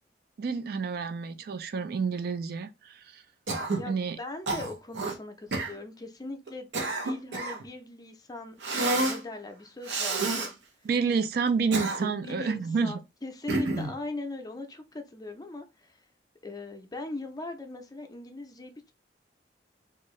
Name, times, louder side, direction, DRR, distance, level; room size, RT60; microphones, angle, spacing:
voice 1, 0.4-3.2 3.9-4.2 10.8-13.0, right 5 dB, 60° right, 0.3 m, -29 dB
Cough, 3.5-3.9 4.5-5.2 5.5-5.7 6.5-7.6 8.6-9.2 9.9-10.5 11.5-12.3 13.5-14.0, right 2 dB, 85° right, 0.7 m, -29 dB
voice 2, 3.7-6.7 7.0-10.5 12.2-16.0 16.4-18.9, left 2 dB, 20° left, 0.5 m, -40 dB
2.7 x 2.4 x 3.0 m
head